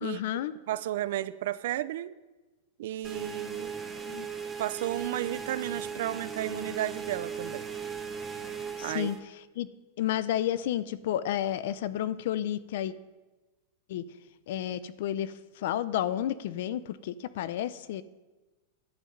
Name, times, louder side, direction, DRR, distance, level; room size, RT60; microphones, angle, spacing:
voice 1, 0.0-0.5 4.1-4.3 8.8-9.1 9.6-9.7 10.0-12.9 13.9-14.1 14.5-15.3 15.6-18.0, left 11 dB, 55° left, 16 dB, 0.5 m, -31 dB
voice 2, 0.7-2.2 2.8-3.7 4.6-7.7 8.8-9.1, right 13 dB, 55° right, 16 dB, 0.4 m, -33 dB
sound 1, 3.0-9.2, right 6 dB, 5° right, 0.8 m, -38 dB
11.5 x 5.7 x 7.8 m, 1.2 s
supercardioid pair, 170°, 0 cm